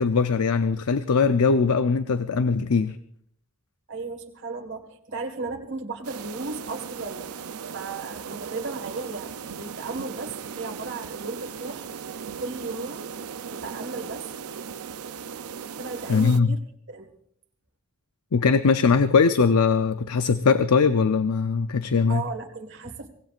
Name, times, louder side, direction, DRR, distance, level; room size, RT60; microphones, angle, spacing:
voice 1, 0.0-3.0 16.1-16.6 18.3-22.2, left 5 dB, 90° left, 0.6 m, -21 dB
voice 2, 3.9-7.3 7.7-11.9 12.4-13.1 13.5-14.3 15.8-16.6 16.9-17.1 22.1-23.1, right 3 dB, 55° right, 1.7 m, -35 dB
sound 1, 6.0-16.4, right 6 dB, 85° right, 0.6 m, -37 dB
24.0 x 18.5 x 2.5 m
head